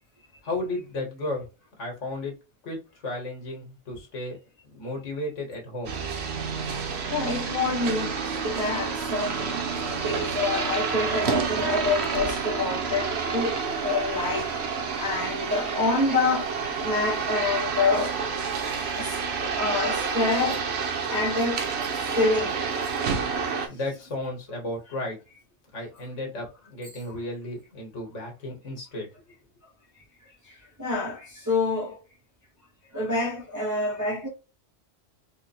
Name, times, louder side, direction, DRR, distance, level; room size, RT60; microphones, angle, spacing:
voice 1, 0.4-1.5 1.8-2.3 2.6-4.4 4.6-5.9 23.7-25.2 25.7-29.1, left 1 dB, 75° left, 1.6 m, -34 dB
sound 1, 5.9-23.7, right 5 dB, 65° right, 0.9 m, -29 dB
voice 2, 7.1-9.6 9.9-14.5 14.9-18.4 18.8-20.6 21.1-21.7 22.1-22.7 23.1-23.2 30.4-30.5 30.8-32.0 32.9-34.3, left 3 dB, 20° right, 0.7 m, -27 dB
3.7 x 2.1 x 4.2 m
omnidirectional pair, 1.3 m